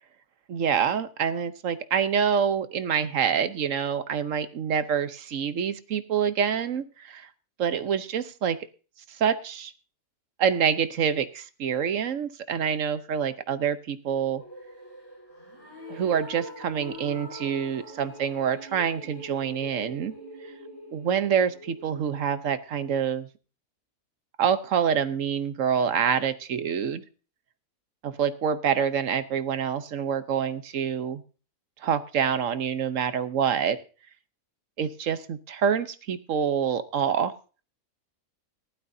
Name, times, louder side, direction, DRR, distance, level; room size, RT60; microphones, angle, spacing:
voice 1, 0.5-7.3 7.6-8.6 9.2-9.7 10.4-14.4 15.9-20.1 20.9-23.3 24.4-27.0 28.0-31.2 31.8-33.8 34.8-37.3, right 7 dB, 65° right, 12 dB, 1.2 m, -26 dB
sound 1, 14.4-22.6, equal, 45° left, 7.0 m, -44 dB
19.0 x 12.0 x 2.7 m, 0.36 s
omnidirectional pair, 1.5 m